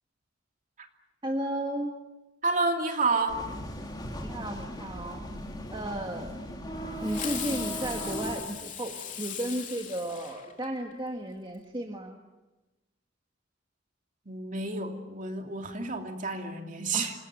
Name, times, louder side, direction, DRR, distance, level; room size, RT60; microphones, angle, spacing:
voice 1, 1.2-1.9 4.2-5.2 5.7-6.3 7.0-12.2 16.9-17.1, right 1 dB, 25° right, 2 dB, 1.8 m, -34 dB
voice 2, 2.4-3.5 14.3-17.1, right 3 dB, 45° right, 4 dB, 2.8 m, -30 dB
sound 1, 3.3-8.4, equal, 20° left, 3.2 m, -37 dB
Fireworks, 7.0-10.9, left 8 dB, 40° left, 3.2 m, -39 dB
27.5 x 19.5 x 9.2 m, 1.1 s
head